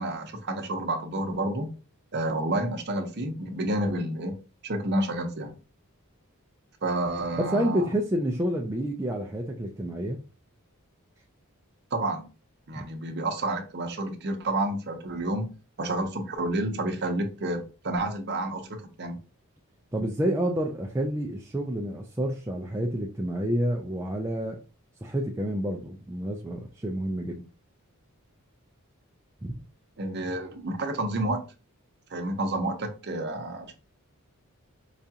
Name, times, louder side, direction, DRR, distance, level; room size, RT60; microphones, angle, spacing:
voice 1, 0.0-1.7 2.1-4.4 4.6-5.5 6.8-7.9 11.9-12.3 12.7-19.2 30.0-31.4 32.1-33.7, right 1 dB, 50° right, 4 dB, 0.7 m, -30 dB
voice 2, 7.4-10.2 12.8-12.9 19.9-24.6 25.0-27.4 29.4-29.5, right 1 dB, 10° right, 0 dB, 0.3 m, -29 dB
4.8 x 2.3 x 2.7 m, 0.33 s
head